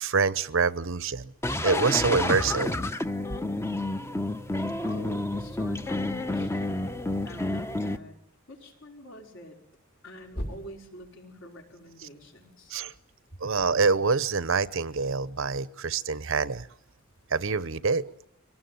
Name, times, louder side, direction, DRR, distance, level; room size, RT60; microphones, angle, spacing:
voice 1, 0.0-1.3 1.6-2.8 12.0-12.1 12.7-12.9 13.4-16.7 17.3-18.1, right 4 dB, 65° right, 17 dB, 0.9 m, -26 dB
sound 1, 1.4-8.0, left 2 dB, 10° left, 0.9 m, -30 dB
sound 2, 2.0-7.8 10.3-11.1, equal, 45° left, 3.4 m, -44 dB
voice 2, 4.8-6.9 7.2-8.2 8.5-9.6 10.0-12.7, equal, 60° left, 2 dB, 5.2 m, -46 dB
24.0 x 19.0 x 9.3 m, 0.75 s
head